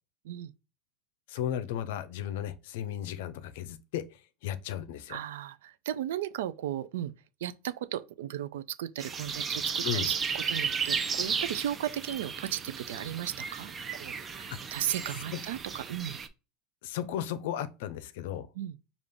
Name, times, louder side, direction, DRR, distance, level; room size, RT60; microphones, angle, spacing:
voice 1, 1.3-4.0 4.4-5.2 9.8-10.1 15.3-15.4 16.8-18.5, left 10 dB, 75° left, 0.5 m, -35 dB
voice 2, 5.1-7.1 7.4-16.2 18.5-18.8, right 11 dB, 85° right, 0.4 m, -36 dB
sound 1, 9.0-16.3, right 6 dB, 30° right, 0.5 m, -34 dB
5.0 x 2.4 x 3.6 m
supercardioid pair, 105°, 0 cm